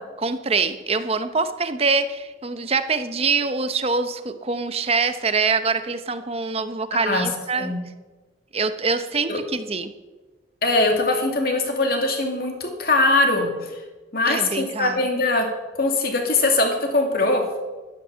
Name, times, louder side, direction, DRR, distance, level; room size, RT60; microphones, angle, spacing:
voice 1, 0.2-7.7 8.5-9.9 14.3-15.0, right 4 dB, 35° right, 10 dB, 0.8 m, -24 dB
voice 2, 10.6-13.7 14.1-15.5 15.7-17.4, left 2 dB, 55° left, 3 dB, 2.4 m, -21 dB
12.5 x 10.0 x 6.8 m, 1.2 s
head